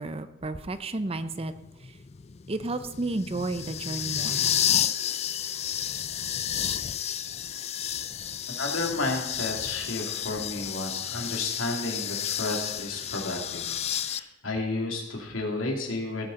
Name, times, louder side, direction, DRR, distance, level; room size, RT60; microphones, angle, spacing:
voice 1, 0.0-1.5 2.5-4.5, right 2 dB, 30° right, 11 dB, 0.6 m, -32 dB
sound 1, 1.1-14.2, left 10 dB, 35° left, 0.4 m, -31 dB
voice 2, 8.6-16.3, left 2 dB, 85° left, 1 dB, 2.7 m, -32 dB
17.0 x 8.9 x 4.1 m, 0.95 s
head